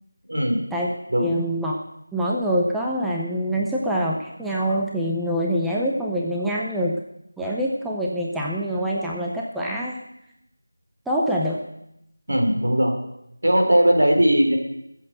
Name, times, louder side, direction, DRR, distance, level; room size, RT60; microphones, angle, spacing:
voice 1, 0.3-0.6 1.1-1.4 3.5-3.6 12.3-12.9 13.4-14.6, right 1 dB, 75° right, 2 dB, 4.0 m, -19 dB
voice 2, 1.2-1.7 2.1-7.0 7.4-10.0 11.1-11.6, equal, ahead, -4 dB, 0.6 m, -25 dB
14.5 x 7.7 x 7.7 m, 0.81 s
figure-of-eight pair, 175°, 0 cm